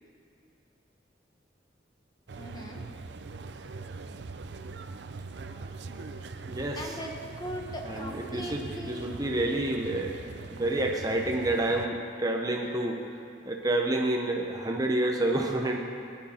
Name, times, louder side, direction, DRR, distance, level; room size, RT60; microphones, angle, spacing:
sound 1, 2.3-11.9, right 4 dB, 65° right, 0.5 m, -41 dB
voice 1, 2.4-2.8 6.7-9.2 15.3-15.7, equal, 25° left, 1 dB, 1.4 m, -40 dB
voice 2, 5.4-6.2 6.5-6.9 7.9-13.0 13.4-15.8, right 1 dB, 20° right, 1 dB, 0.8 m, -29 dB
19.5 x 11.0 x 4.4 m, 2.5 s
head